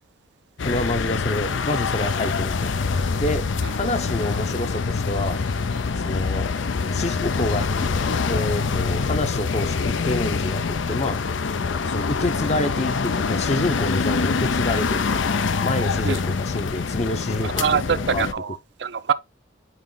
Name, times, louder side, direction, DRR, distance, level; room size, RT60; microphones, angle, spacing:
sound 1, 0.6-18.3, left 4 dB, 80° left, 0.6 m, -25 dB
voice 1, 0.6-2.7 3.2-5.4 6.0-6.5 6.9-7.6 8.3-11.2 11.9-15.0 15.6-17.8 18.1-18.3, left 1 dB, 35° left, 0.7 m, -27 dB
voice 2, 17.4-19.1, right 6 dB, 60° right, 0.5 m, -24 dB
9.0 x 3.1 x 3.9 m
head